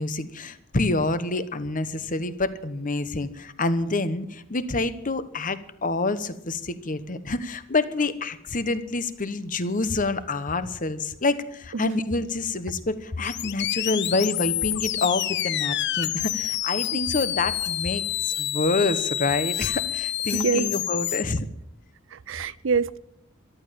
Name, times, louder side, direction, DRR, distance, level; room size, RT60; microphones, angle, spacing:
voice 1, 0.0-21.5, left 3 dB, 40° left, 1.1 m, -27 dB
sound 1, 13.2-21.2, left 13 dB, 55° left, 0.6 m, -28 dB
voice 2, 20.3-20.7 22.1-23.0, right 5 dB, 65° right, 0.5 m, -25 dB
14.0 x 12.5 x 7.6 m
head